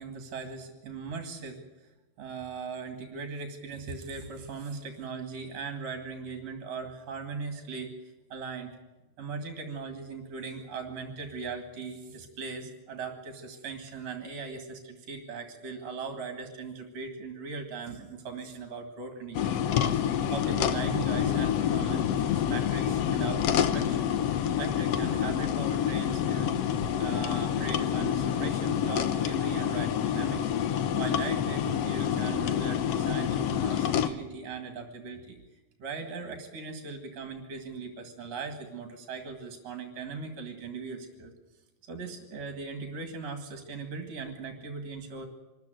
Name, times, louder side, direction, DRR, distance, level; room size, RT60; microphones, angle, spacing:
voice 1, 0.0-1.6 2.2-7.9 8.3-8.8 9.2-19.6 19.9-22.1 22.3-26.5 27.0-30.5 31.0-41.3 41.9-45.3, right 4 dB, 50° right, 5 dB, 2.9 m, -39 dB
sound 1, 19.3-34.1, left 9 dB, 70° left, 1.5 m, -27 dB
25.0 x 13.5 x 9.2 m, 1.1 s
omnidirectional pair, 4.0 m